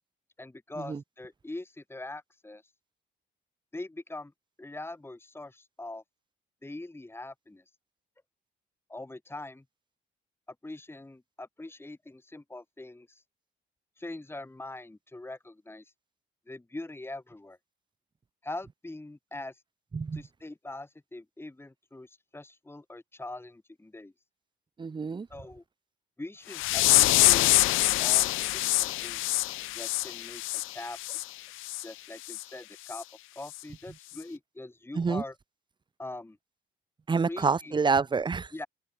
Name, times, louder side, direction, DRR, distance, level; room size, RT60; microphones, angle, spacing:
voice 1, 0.4-2.6 3.7-4.3 4.6-6.0 6.6-7.6 8.9-9.6 10.6-13.2 14.0-15.9 16.5-17.6 18.4-19.6 20.1-24.1 25.3-25.6 26.2-29.4 29.7-30.4 30.7-31.2 31.8-33.0 33.4-35.4 36.0-36.4 37.3-37.7 38.5-38.7, left 2 dB, 10° left, 2.3 m, -42 dB
voice 2, 24.8-25.3 34.9-35.2 37.1-38.5, right 5 dB, 25° right, 0.6 m, -27 dB
sound 1, 26.5-31.2 31.6-31.8 32.3-32.4 32.9-33.0 33.5-33.6, left 19 dB, 90° left, 0.5 m, -25 dB
cardioid pair, 90°, 20 cm